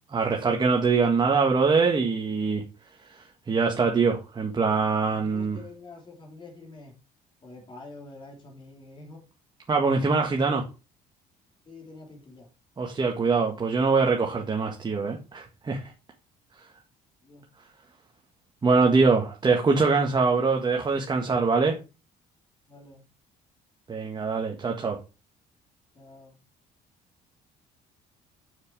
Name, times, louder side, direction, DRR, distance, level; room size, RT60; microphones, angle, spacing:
voice 1, 0.1-2.6 3.1-5.6 9.7-10.6 12.8-15.8 18.6-21.8 23.9-25.0, right 4 dB, 25° right, 1.7 m, -23 dB
voice 2, 5.2-6.9 7.4-9.2 11.7-12.5 17.2-17.4 22.7-23.0 26.0-26.3, left 3 dB, 30° left, 3.8 m, -46 dB
7.5 x 6.5 x 4.9 m
cardioid pair, 110°, 17 cm